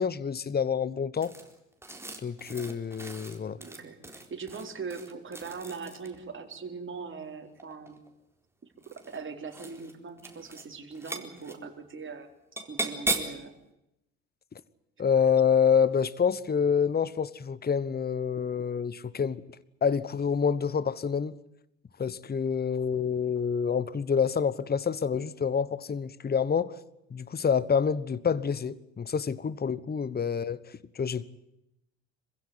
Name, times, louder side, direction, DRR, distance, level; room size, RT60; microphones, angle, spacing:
voice 1, 0.0-1.3 2.2-3.6 15.0-19.4 19.8-21.4 22.0-26.8 27.1-31.3, left 7 dB, 25° left, 1.2 m, -27 dB
sound 1, 1.2-6.2 7.4-8.1 8.8-9.2 9.5-9.9 10.2-10.7 10.9-11.6 12.6-13.4, right 2 dB, 5° right, 4.1 m, -37 dB
voice 2, 3.6-8.0 8.9-12.3 12.7-13.5, right 5 dB, 30° right, 4.6 m, -41 dB
26.5 x 15.5 x 9.8 m
hypercardioid pair, 65°, 39 cm